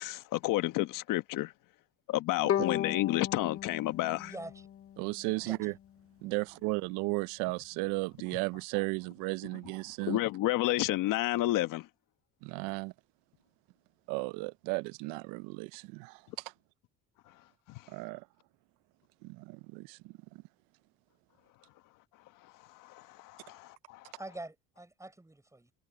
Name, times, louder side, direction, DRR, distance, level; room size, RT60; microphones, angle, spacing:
voice 1, 0.0-1.5 2.1-4.3 10.0-11.9 17.7-17.8 22.8-24.1, left 16 dB, 75° left, 1.4 m, -31 dB
Bowed string instrument, 2.5-5.6, left 11 dB, 45° left, 0.9 m, -36 dB
voice 2, 4.2-4.7 5.4-5.6 24.2-25.7, right 2 dB, 10° right, 6.2 m, -45 dB
voice 3, 5.0-5.7 6.2-10.2 12.4-12.9 14.1-16.2 17.9-18.2 19.2-20.1, right 23 dB, 90° right, 0.6 m, -35 dB
cardioid pair, 100°, 33 cm